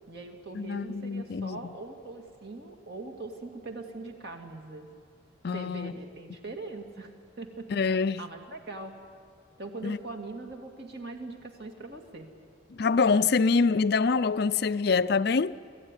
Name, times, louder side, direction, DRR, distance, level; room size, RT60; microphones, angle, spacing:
voice 1, 0.0-4.9 5.5-7.1 7.4-7.7 8.2-9.0 9.6-12.3, right 2 dB, 55° right, 2.4 m, -41 dB
voice 2, 0.5-1.7 5.4-5.9 7.7-8.2 9.8-10.0 12.7-15.5, left 4 dB, 55° left, 0.5 m, -25 dB
25.5 x 14.5 x 9.9 m
head